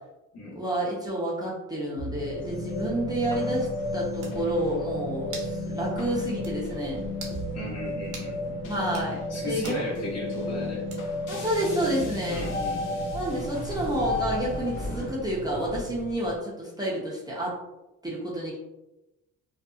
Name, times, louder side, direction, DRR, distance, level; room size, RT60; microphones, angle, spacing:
voice 1, 0.4-7.0 8.7-9.7 11.3-12.5 13.1-17.5 18.0-18.6, right 1 dB, 10° right, -6 dB, 0.6 m, -29 dB
sound 1, 2.0-16.4, left 1 dB, 85° left, 0.6 m, -35 dB
sound 2, 2.0-16.4, equal, 25° left, 0.8 m, -38 dB
sound 3, 4.2-4.4 5.3-5.6 5.9-6.0 6.4-6.6 7.1-7.4 8.1-8.3 8.8-9.1 9.6-9.8 10.9-11.2, right 4 dB, 65° right, 0.8 m, -42 dB
voice 2, 7.5-8.6 9.3-10.8 12.3-13.1, left 1 dB, 55° left, -5 dB, 1.1 m, -36 dB
2.6 x 2.3 x 2.3 m, 0.96 s
cardioid pair, 115°, 32 cm